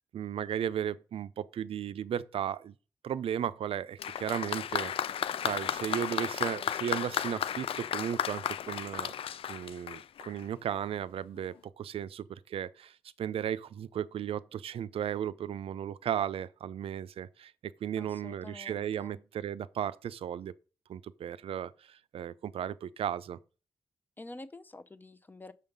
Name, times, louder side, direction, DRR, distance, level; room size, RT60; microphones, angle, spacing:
voice 1, 0.1-2.7 3.0-5.2 5.4-9.1 9.5-17.5 17.8-20.5 20.9-23.4, right 9 dB, 80° right, 0.5 m, -35 dB
Applause, 4.0-10.5 11.4-11.5, left 9 dB, 70° left, 0.4 m, -34 dB
voice 2, 18.0-19.2 24.2-25.5, left 2 dB, 20° left, 0.6 m, -48 dB
6.7 x 5.6 x 5.2 m
wide cardioid pair, 140°, 10 cm